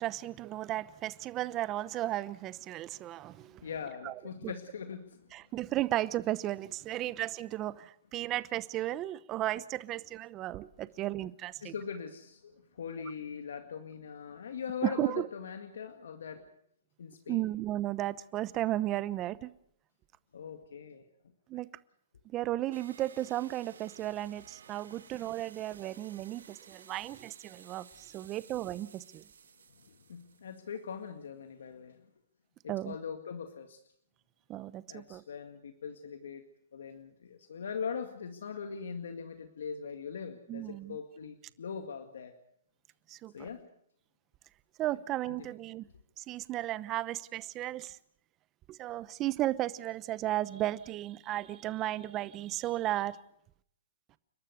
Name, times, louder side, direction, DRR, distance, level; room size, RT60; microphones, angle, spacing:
voice 1, 0.0-3.6 4.0-4.1 4.4-4.5 5.3-11.7 14.8-15.3 17.3-19.5 21.5-21.7 22.3-29.2 32.7-33.0 34.5-35.2 40.5-41.0 43.1-43.5 44.8-45.9 46.2-48.0 48.7-53.2, right 14 dB, 25° right, 0.9 m, -34 dB
voice 2, 3.6-5.3 11.6-16.5 17.0-17.4 20.3-21.1 29.8-32.1 32.6-33.8 34.9-42.3 43.3-43.7 45.3-45.4, left 6 dB, 80° left, 2.0 m, -41 dB
sound 1, 22.7-31.0, right 6 dB, 85° right, 1.9 m, -56 dB
30.0 x 12.5 x 8.0 m
hypercardioid pair, 145°, 0 cm